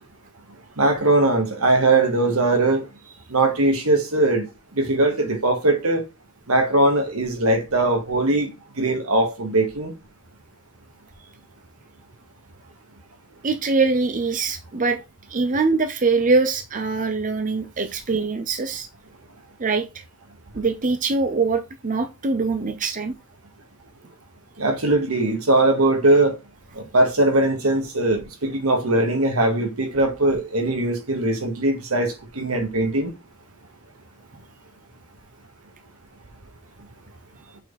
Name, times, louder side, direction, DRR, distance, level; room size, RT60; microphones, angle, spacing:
voice 1, 0.8-2.8 3.3-4.5 4.7-6.1 6.5-9.9 24.6-26.4 26.7-33.1, right 2 dB, 85° right, 1.8 m, -20 dB
voice 2, 13.4-15.0 15.3-18.9 19.6-20.0 20.5-23.1, right 4 dB, 40° right, 0.6 m, -23 dB
6.5 x 4.3 x 4.1 m
head